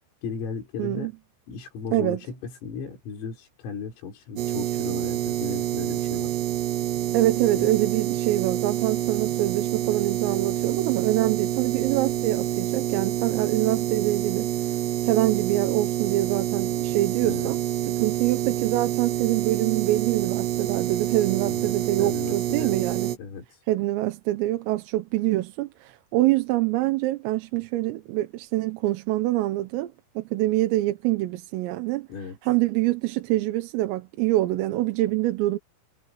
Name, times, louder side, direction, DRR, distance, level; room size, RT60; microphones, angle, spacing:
voice 1, 0.2-1.1 1.5-6.4 7.5-7.7 17.2-17.5 21.4-22.8 23.2-23.6 32.1-32.4, left 6 dB, 85° left, 8.2 m, -36 dB
voice 2, 0.8-1.1 1.9-2.2 7.1-14.5 15.0-17.6 17.9-23.2 23.7-32.1 32.4-35.6, right 16 dB, 90° right, 3.8 m, -25 dB
sound 1, 4.4-23.2, right 12 dB, 65° right, 3.3 m, -27 dB
omnidirectional pair, 5.8 m